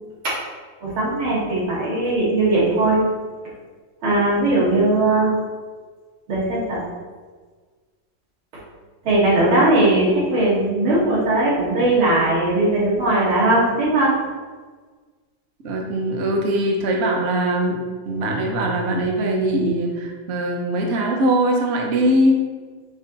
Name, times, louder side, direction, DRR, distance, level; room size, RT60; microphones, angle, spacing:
voice 1, 0.8-3.0 4.0-5.3 6.3-6.8 9.0-14.1, right 2 dB, 75° right, -8 dB, 2.9 m, -19 dB
voice 2, 15.6-17.8 18.0-22.4, right 1 dB, 50° right, 0 dB, 0.8 m, -21 dB
9.0 x 3.1 x 4.0 m, 1.4 s
omnidirectional pair, 2.3 m